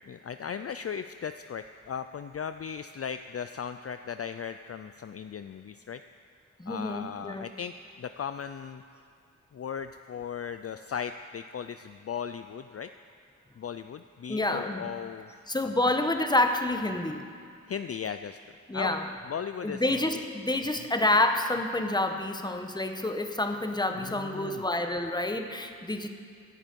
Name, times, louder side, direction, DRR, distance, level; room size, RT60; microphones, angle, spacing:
voice 1, 0.1-6.0 6.7-8.8 9.5-12.9 13.6-15.3 15.6-15.9 17.7-18.4 18.7-18.9 19.2-20.2 20.8-20.9 23.9-24.6, left 7 dB, 50° left, 9 dB, 0.4 m, -37 dB
voice 2, 6.6-7.4 14.3-14.9 15.5-17.2 18.7-19.1 19.6-26.1, left 1 dB, 15° left, 6 dB, 1.0 m, -28 dB
17.0 x 11.0 x 5.3 m, 2.3 s
wide cardioid pair, 80°, 32 cm